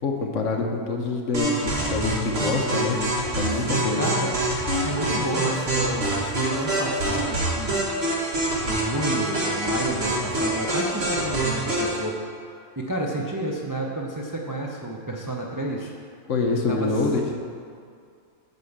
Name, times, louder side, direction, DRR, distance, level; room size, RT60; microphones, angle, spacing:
voice 1, 0.0-3.0 3.3-4.1 16.3-17.3, left 3 dB, 55° left, 1 dB, 1.2 m, -25 dB
sound 1, 1.3-12.0, right 1 dB, 45° right, 1.8 m, -26 dB
voice 2, 3.5-4.3 4.8-7.9 8.6-12.2 12.8-15.9 16.7-16.9, right 1 dB, 25° right, -2 dB, 0.4 m, -30 dB
8.2 x 5.2 x 7.2 m, 2.3 s
omnidirectional pair, 1.6 m